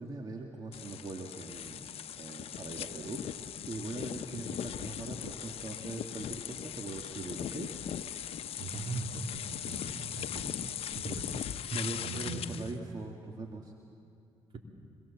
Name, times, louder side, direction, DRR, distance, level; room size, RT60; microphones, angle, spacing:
voice 1, 0.0-1.9 2.2-7.7 11.7-13.7, right 3 dB, 40° right, 1 dB, 2.2 m, -41 dB
sound 1, 0.7-12.7, left 10 dB, 65° left, 0.8 m, -39 dB
voice 2, 8.6-12.4, right 2 dB, 55° right, 2 dB, 3.4 m, -40 dB
26.0 x 22.5 x 7.3 m, 2.5 s
supercardioid pair, 65°, 11 cm